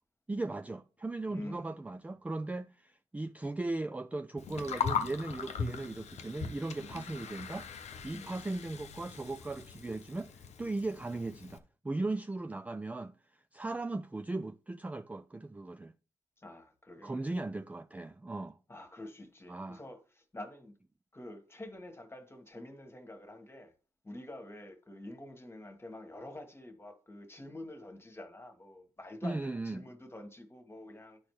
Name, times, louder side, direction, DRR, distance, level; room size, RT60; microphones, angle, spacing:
voice 1, 0.3-7.7 8.0-13.1 13.5-15.9 17.0-18.6 19.5-19.8 29.2-29.8, right 2 dB, 10° right, 0.3 m, -37 dB
voice 2, 1.3-1.7 8.1-8.5 16.4-17.3 18.7-20.7 21.1-23.7 24.0-31.2, left 1 dB, 20° left, 1.5 m, -47 dB
Gurgling, 4.4-11.6, left 6 dB, 65° left, 0.8 m, -39 dB
11.0 x 4.3 x 3.1 m
supercardioid pair, 60°, 12 cm